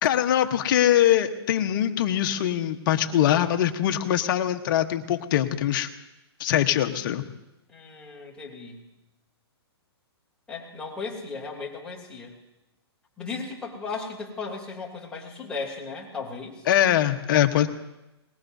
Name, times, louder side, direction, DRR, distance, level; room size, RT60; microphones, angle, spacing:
voice 1, 0.0-5.9 6.4-7.2 16.7-17.7, left 11 dB, 50° left, 7 dB, 1.1 m, -22 dB
voice 2, 7.7-8.8 10.5-12.4 13.2-16.6, left 4 dB, 5° left, -5 dB, 3.0 m, -36 dB
22.5 x 20.0 x 2.7 m, 0.95 s
hypercardioid pair, 140°, 14 cm